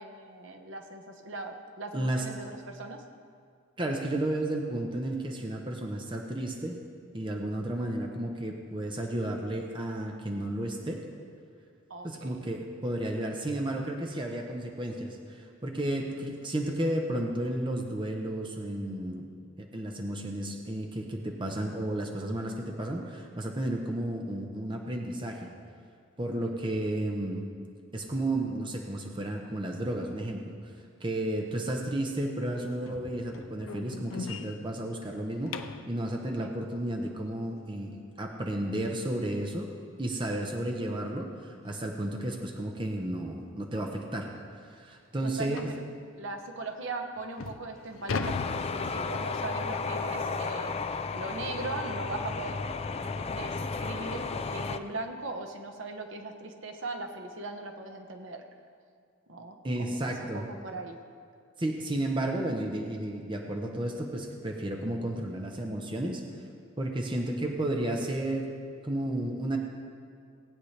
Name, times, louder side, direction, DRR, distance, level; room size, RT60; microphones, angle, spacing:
voice 1, 0.0-3.0 11.9-12.4 36.4-36.6 45.2-45.8 46.1-52.6 53.0-58.4 59.3-61.0, right 2 dB, 65° right, 4 dB, 1.1 m, -39 dB
voice 2, 1.9-2.2 3.8-6.8 7.1-11.0 12.0-19.3 19.6-25.5 26.2-27.4 27.9-30.6 31.0-35.6 35.9-39.7 40.0-44.3 44.7-45.6 59.6-60.5 61.6-66.2 66.8-68.5 68.8-69.6, right 1 dB, 25° right, 1 dB, 0.9 m, -32 dB
sound 1, 32.9-36.0 38.8-38.9 39.3-39.5 39.9-40.0 40.5-40.6 41.7-41.8 42.2-42.4 43.0-43.1 43.5-43.6 44.1-44.2 45.6-45.9 46.6-46.7 47.2-49.5, left 4 dB, 85° left, 0.5 m, -38 dB
sound 2, 48.2-54.8, left 4 dB, 30° left, 0.4 m, -33 dB
18.5 x 8.8 x 3.3 m, 2.3 s
head